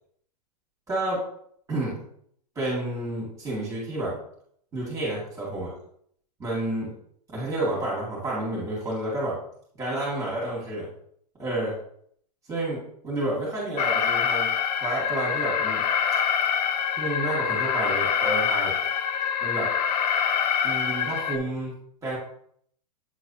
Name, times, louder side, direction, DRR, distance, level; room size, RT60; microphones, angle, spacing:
voice 1, 0.9-1.2 1.7-2.0 2.6-4.2 4.7-5.7 6.4-6.9 7.3-9.4 9.8-10.9 11.4-11.8 12.5-14.5 14.8-15.8 17.0-18.8 19.4-19.7 20.6-22.2, right 1 dB, 15° right, -5 dB, 2.3 m, -30 dB
Alarm, 13.8-21.4, left 8 dB, 85° left, 0.6 m, -25 dB
8.3 x 4.0 x 2.9 m, 0.65 s
hypercardioid pair, 135°, 21 cm